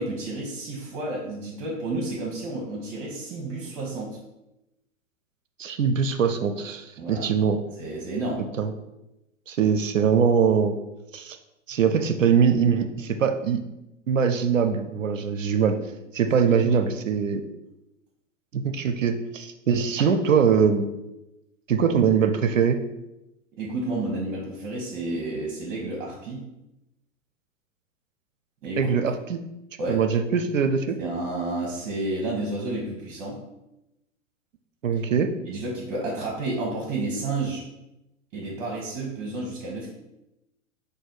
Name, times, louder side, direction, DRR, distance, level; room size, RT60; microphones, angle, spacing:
voice 1, 0.0-4.2 7.0-7.3 7.8-8.5 16.6-16.8 23.5-26.5 28.6-28.9 29.8-30.0 31.0-33.4 35.5-37.6 38.3-39.9, right 2 dB, 40° right, -3 dB, 1.0 m, -31 dB
voice 2, 5.6-7.6 8.6-8.7 9.5-10.8 11.1-11.4 11.7-13.6 14.1-15.8 16.1-17.4 18.5-20.9 21.7-22.8 28.8-29.4 29.9-31.0 34.8-35.3, right 6 dB, 85° right, 8 dB, 0.5 m, -22 dB
4.7 x 2.6 x 3.9 m, 0.94 s
figure-of-eight pair, 95°, 38 cm